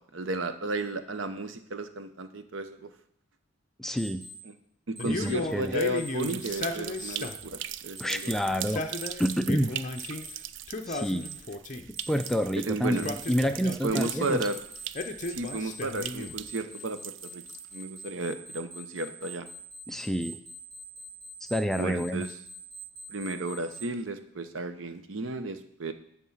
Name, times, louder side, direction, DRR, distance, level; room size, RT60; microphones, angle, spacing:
voice 1, 0.1-2.9 4.4-4.5 4.9-8.3 12.7-13.1 13.8-14.6 15.3-17.4 17.7-19.5 21.7-22.3 23.1-25.9, right 2 dB, 90° right, 10 dB, 0.8 m, -33 dB
voice 2, 3.8-4.2 5.0-5.7 8.0-8.8 9.2-9.7 10.9-11.3 12.1-14.4 19.9-20.4 21.4-22.3, equal, ahead, 8 dB, 0.3 m, -28 dB
Alarm, 4.0-4.3 5.0-5.3 6.0-6.3 7.0-7.3 8.0-8.3 9.0-9.3 10.0-10.3 11.0-11.3 12.0-12.3 13.0-13.3 14.0-23.8, equal, 55° right, 2.6 m, -44 dB
Male speech man speaking, 5.0-7.5 8.5-10.3 10.7-12.0 12.8-14.3 14.9-16.5, left 2 dB, 40° left, 0.6 m, -35 dB
sound 1, 5.5-18.0, right 12 dB, 70° right, 0.4 m, -41 dB
11.0 x 3.7 x 7.2 m, 0.69 s
head